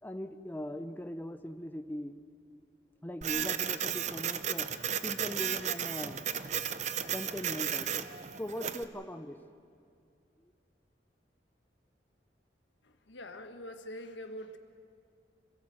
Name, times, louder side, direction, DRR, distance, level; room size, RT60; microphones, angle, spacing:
voice 1, 0.0-2.2 3.0-4.7 5.0-6.2 7.1-8.0 8.4-9.4, left 1 dB, 10° left, 9 dB, 0.7 m, -40 dB
Printer, 3.2-8.8, right 8 dB, 40° right, 0.7 m, -34 dB
voice 2, 12.8-14.6, left 1 dB, 80° left, 7 dB, 1.4 m, -44 dB
26.5 x 16.5 x 7.7 m, 2.4 s
head